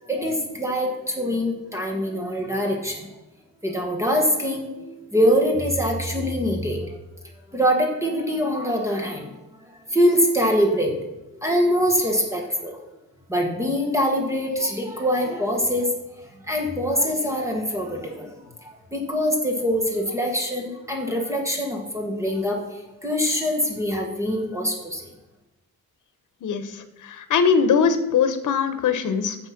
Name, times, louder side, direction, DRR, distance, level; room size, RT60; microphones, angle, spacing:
voice 1, 0.0-3.1 3.6-6.9 7.5-11.0 11.3-12.8 13.3-25.1, equal, 10° right, 1 dB, 1.5 m, -24 dB
voice 2, 26.4-29.4, left 6 dB, 75° left, 11 dB, 1.0 m, -21 dB
9.8 x 7.1 x 5.9 m, 1.0 s
wide cardioid pair, 155°, 31 cm